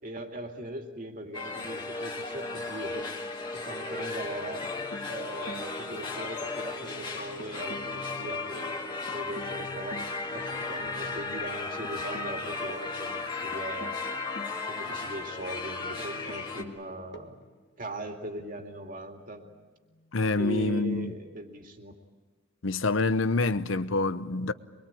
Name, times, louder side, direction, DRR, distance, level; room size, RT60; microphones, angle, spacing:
voice 1, 0.0-3.1 3.5-4.6 5.1-8.8 9.1-10.0 10.3-14.0 14.7-17.4 17.8-19.4 20.3-21.9, right 1 dB, 45° right, 2.5 m, -39 dB
sound 1, 1.3-16.6, left 3 dB, 25° left, 2.0 m, -35 dB
sound 2, 4.2-18.2 19.5-19.6 19.9-20.1, left 1 dB, 55° left, 1.5 m, -47 dB
voice 2, 20.1-21.2 22.6-24.5, left 3 dB, 75° left, 0.9 m, -27 dB
24.5 x 22.5 x 8.7 m
head